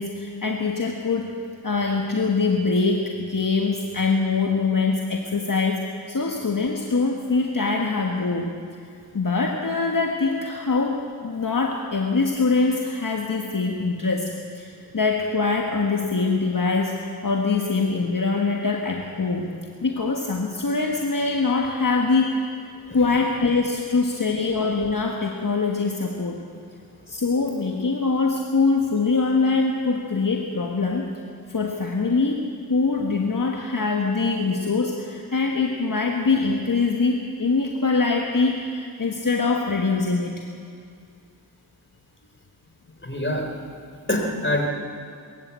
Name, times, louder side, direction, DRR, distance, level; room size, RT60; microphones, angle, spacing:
voice 1, 0.0-1.3 1.6-8.5 9.1-19.5 19.8-22.4 22.9-26.4 27.1-31.1 31.5-32.4 32.7-40.4, left 4 dB, 55° left, 1 dB, 1.6 m, -23 dB
voice 2, 43.0-43.4 44.1-44.7, left 1 dB, 30° left, 2 dB, 3.6 m, -24 dB
22.0 x 14.5 x 8.3 m, 2.4 s
wide cardioid pair, 55°, 40 cm